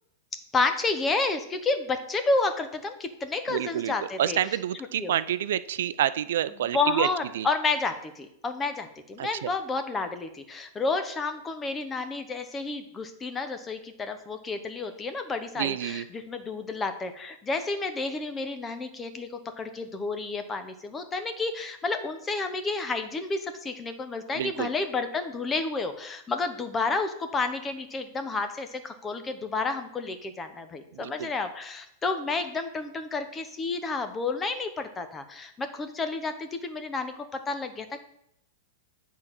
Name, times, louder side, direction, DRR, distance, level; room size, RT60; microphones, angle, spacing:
voice 1, 0.5-4.6 5.0-5.1 6.7-38.0, left 3 dB, 15° left, 8 dB, 0.8 m, -30 dB
voice 2, 3.5-7.1 7.3-7.5 9.2-9.5 15.6-16.0 24.3-24.7 30.9-31.3, right 11 dB, 75° right, 15 dB, 0.4 m, -28 dB
8.7 x 4.0 x 6.0 m, 0.75 s
supercardioid pair, 140°, 0 cm